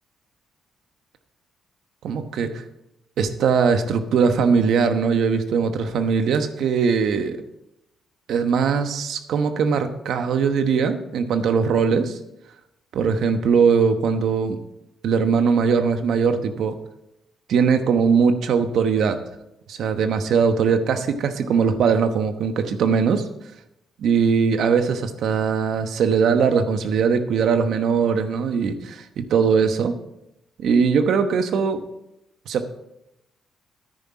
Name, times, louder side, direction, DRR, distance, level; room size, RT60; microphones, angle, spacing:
voice 1, 2.0-2.6 3.2-7.4 8.3-12.2 12.9-14.6 15.0-16.8 17.5-19.2 19.7-23.3 24.0-29.9 30.6-31.8 32.5-32.7, right 6 dB, 70° right, 8 dB, 1.1 m, -20 dB
10.0 x 9.5 x 4.8 m, 0.85 s
cardioid pair, 90°, 0 cm